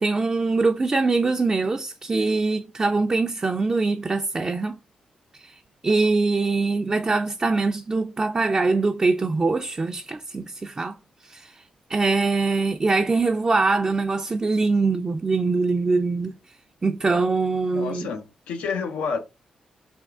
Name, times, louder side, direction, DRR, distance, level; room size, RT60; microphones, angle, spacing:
voice 1, 0.0-4.8 5.4-5.5 5.8-11.0 11.2-11.5 11.9-16.4 16.8-18.1, right 3 dB, 35° right, 0.4 m, -23 dB
voice 2, 17.7-19.2, left 5 dB, 90° left, 0.6 m, -29 dB
3.5 x 2.4 x 3.5 m
supercardioid pair, 50°, 2 cm